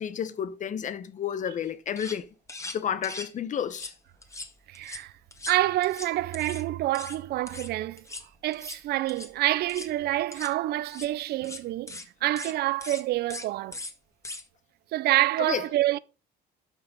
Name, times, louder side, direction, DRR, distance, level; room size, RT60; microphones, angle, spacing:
voice 1, 0.0-2.3 2.7-3.9 15.4-15.6, left 8 dB, 45° left, 1.1 m, -31 dB
sound 1, 1.7-1.8 2.0-2.2 2.5-3.3 3.7-3.9 4.2-5.0 5.3-6.6 6.9-7.2 7.5-7.7 8.0-8.3 8.5-8.8 9.1-9.3 9.6-9.9 10.3-10.5 10.8-11.1 11.4-11.6 11.9-12.1 12.4-12.5 12.8-13.0 13.3-13.5 13.7-13.9 14.2-14.4, left 2 dB, 15° left, 1.8 m, -40 dB
voice 2, 4.7-5.1 5.5-8.0 8.4-13.8 14.9-16.0, right 16 dB, 75° right, 0.6 m, -27 dB
12.0 x 5.9 x 5.3 m
cardioid pair, 110°, 17 cm